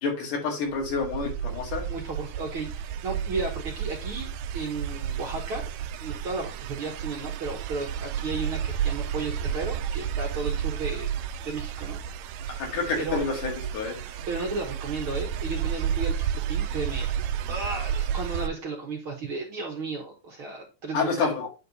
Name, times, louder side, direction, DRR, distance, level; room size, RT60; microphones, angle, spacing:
voice 1, 0.0-1.8 12.6-14.0 20.9-21.5, left 4 dB, 90° left, 0 dB, 3.5 m, -28 dB
sound 1, 0.7-18.5, right 9 dB, 80° right, 1.5 m, -31 dB
voice 2, 1.9-5.6 6.0-11.2 11.4-12.0 12.4-12.6 13.0-13.3 14.3-17.1 17.5-21.3, right 3 dB, 55° right, 1 dB, 1.6 m, -34 dB
8.7 x 3.4 x 4.0 m, 0.30 s
omnidirectional pair, 3.5 m